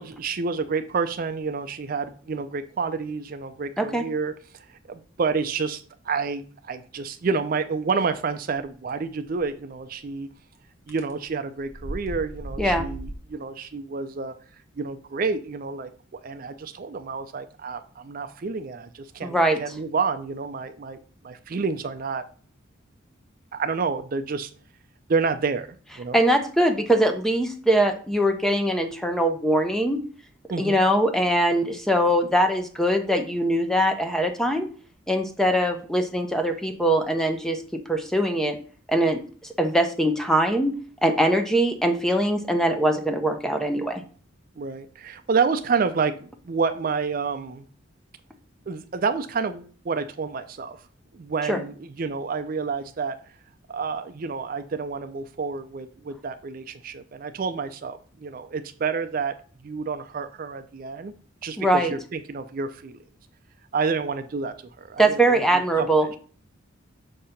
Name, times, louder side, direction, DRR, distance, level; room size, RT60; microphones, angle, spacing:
voice 1, 0.0-4.3 4.9-10.3 10.9-14.3 14.8-19.3 19.6-21.0 21.2-22.2 23.5-24.5 25.1-25.7 26.0-26.2 30.5-30.8 44.6-47.7 48.7-50.8 51.1-53.2 53.7-59.3 59.6-61.1 61.4-63.0 63.7-65.4 65.8-66.2, right 5 dB, 45° right, 9 dB, 0.4 m, -29 dB
sound 1, 10.9-11.1 11.6-13.2, right 1 dB, 80° left, 1.2 m, -35 dB
voice 2, 19.2-19.6 26.1-30.0 30.6-34.7 35.1-38.6 38.9-39.2 39.6-40.8 41.0-44.0 51.5-51.6 61.6-61.9 65.0-66.2, right 1 dB, ahead, 6 dB, 0.6 m, -22 dB
6.6 x 2.8 x 5.6 m, 0.43 s
head